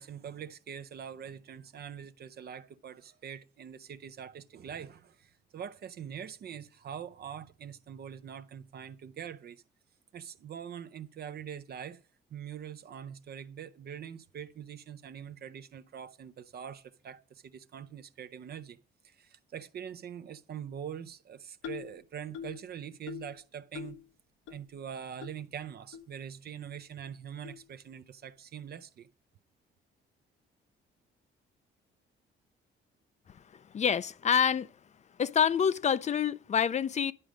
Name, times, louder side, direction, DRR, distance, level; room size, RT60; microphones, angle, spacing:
voice 1, 0.0-9.6 10.1-12.0 12.3-18.8 19.0-24.0 24.5-29.1, right 8 dB, 55° right, 0.6 m, -43 dB
sound 1, 21.6-21.9 22.3-22.6 23.1-23.3 23.7-24.0 24.5-24.6 25.2-25.3 25.9-26.0 26.7-26.8 27.4-27.6, left 9 dB, 80° left, 0.9 m, -42 dB
voice 2, 33.3-34.7 35.2-37.1, left 7 dB, 35° left, 0.4 m, -27 dB
11.0 x 5.0 x 6.4 m
cardioid pair, 90°, 20 cm